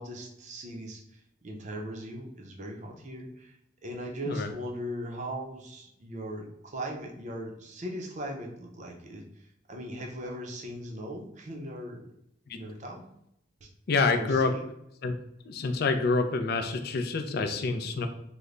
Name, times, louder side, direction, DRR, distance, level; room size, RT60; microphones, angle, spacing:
voice 1, 0.0-3.6 3.8-12.1 12.5-13.0 13.6-13.7 14.1-14.6, equal, 35° right, 0 dB, 0.5 m, -39 dB
voice 2, 13.9-14.5 15.0-15.1 15.5-18.1, left 4 dB, 50° left, 6 dB, 0.4 m, -27 dB
3.2 x 2.1 x 3.7 m, 0.79 s
head